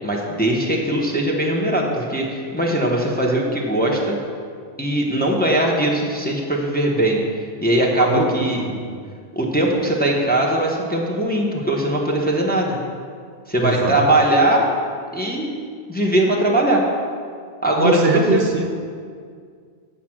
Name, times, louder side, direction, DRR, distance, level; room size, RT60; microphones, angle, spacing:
voice 1, 0.0-4.2 4.8-7.2 7.6-8.6 9.3-12.8 13.5-14.7 15.1-15.5 15.9-16.8 17.6-18.4, right 1 dB, 10° left, -2 dB, 1.1 m, -20 dB
voice 2, 8.0-8.8 13.6-14.1 17.8-18.7, right 3 dB, 55° right, 3 dB, 1.0 m, -22 dB
8.4 x 7.3 x 6.1 m, 2.1 s
omnidirectional pair, 1.2 m